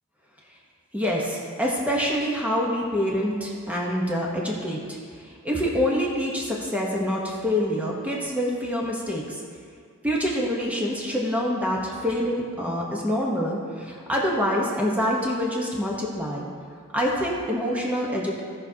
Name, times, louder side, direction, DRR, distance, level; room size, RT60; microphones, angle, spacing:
voice 1, 0.9-9.4 10.0-16.5 16.9-18.4, equal, 5° right, -3 dB, 1.0 m, -26 dB
16.5 x 5.9 x 2.8 m, 2.1 s
head